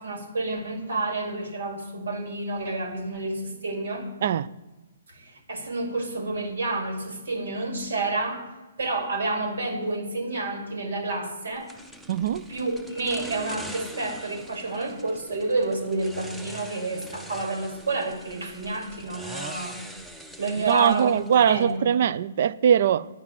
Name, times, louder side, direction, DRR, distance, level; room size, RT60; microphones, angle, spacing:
voice 1, 0.0-4.1 5.1-8.5 8.8-11.7 12.5-19.8 20.4-21.2 21.5-21.9, right 2 dB, 80° right, 2.3 m, -29 dB
sound 1, 11.7-21.8, right 1 dB, 5° right, 0.6 m, -43 dB
voice 2, 12.1-12.4 20.7-23.1, right 9 dB, 55° right, 0.3 m, -21 dB
9.6 x 5.8 x 7.5 m
hypercardioid pair, 145°, 0 cm